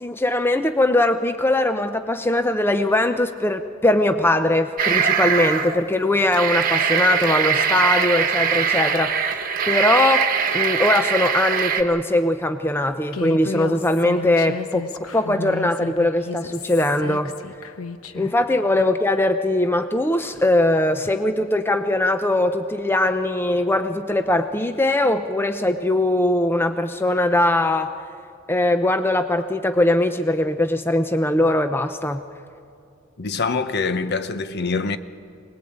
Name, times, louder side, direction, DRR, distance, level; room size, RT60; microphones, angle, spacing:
voice 1, 0.0-17.3 18.1-27.9 28.5-32.2, left 1 dB, 10° left, 0.6 m, -21 dB
sound 1, 4.8-5.8 6.2-11.8, right 7 dB, 40° right, 1.3 m, -21 dB
Human voice, 13.1-18.3, left 4 dB, 85° left, 1.1 m, -33 dB
voice 2, 33.2-35.0, left 4 dB, 50° left, 0.9 m, -24 dB
24.0 x 19.5 x 8.7 m
head